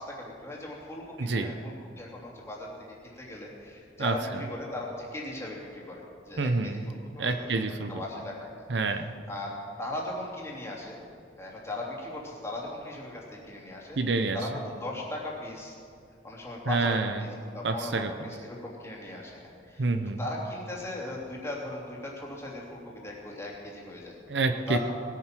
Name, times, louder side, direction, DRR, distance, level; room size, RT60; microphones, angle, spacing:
voice 1, 0.0-7.5 7.9-8.5 8.9-9.0 9.3-11.0 11.4-14.0 14.3-15.8 16.2-19.9 20.2-24.2 24.7-24.8, left 2 dB, 15° left, -3 dB, 2.9 m, -38 dB
voice 2, 1.2-1.5 4.0-4.1 6.4-6.8 7.2-7.9 8.7-9.1 14.0-14.4 16.7-17.2 17.6-18.1 19.8-20.2 24.3-24.8, right 3 dB, 70° right, 8 dB, 0.8 m, -27 dB
19.5 x 9.3 x 6.0 m, 2.3 s
head